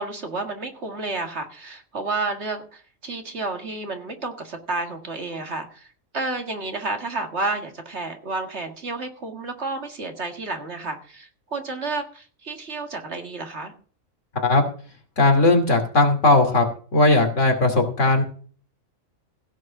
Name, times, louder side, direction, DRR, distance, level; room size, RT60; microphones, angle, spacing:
voice 1, 0.0-13.7, right 3 dB, 55° right, 5 dB, 2.1 m, -31 dB
voice 2, 14.3-14.7 15.2-16.7 16.9-18.2, left 2 dB, 65° left, 3 dB, 3.0 m, -18 dB
16.0 x 6.4 x 6.1 m, 0.42 s
omnidirectional pair, 1.4 m